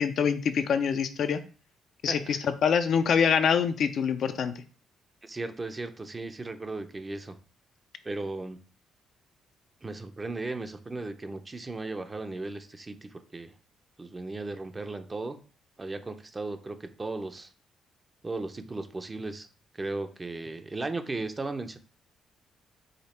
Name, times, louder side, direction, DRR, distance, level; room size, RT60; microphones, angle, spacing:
voice 1, 0.0-1.4 2.0-4.5, left 7 dB, 65° left, 9 dB, 0.5 m, -25 dB
voice 2, 2.1-2.4 5.2-7.4 8.0-8.6 9.8-13.5 14.0-15.4 15.8-17.5 18.2-19.5 19.7-21.8, right 2 dB, 25° right, 8 dB, 0.6 m, -36 dB
5.0 x 2.4 x 4.2 m, 0.37 s
cardioid pair, 90°, 0 cm